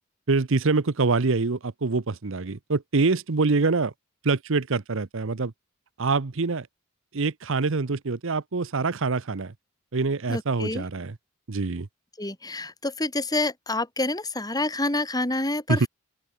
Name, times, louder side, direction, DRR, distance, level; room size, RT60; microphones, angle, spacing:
voice 1, 0.3-3.9 4.2-5.5 6.0-6.7 7.1-9.5 9.9-11.1 11.5-11.9 15.7-15.9, right 3 dB, 70° right, 0.8 m, -25 dB
voice 2, 10.3-10.8 12.2-15.9, left 2 dB, 20° left, 4.5 m, -28 dB
open air
head